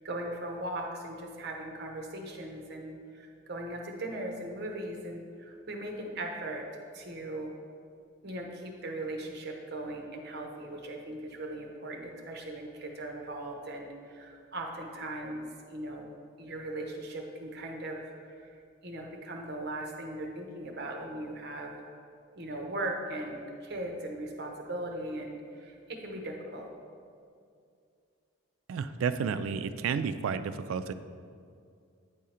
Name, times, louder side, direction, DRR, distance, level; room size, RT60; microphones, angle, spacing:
voice 1, 0.0-6.6 6.9-7.5 8.2-16.1 16.4-18.5 18.8-21.7 22.4-26.7, right 1 dB, 50° right, 1 dB, 0.8 m, -39 dB
voice 2, 28.7-30.9, right 6 dB, 75° right, 11 dB, 0.3 m, -31 dB
9.1 x 3.7 x 4.3 m, 2.3 s
head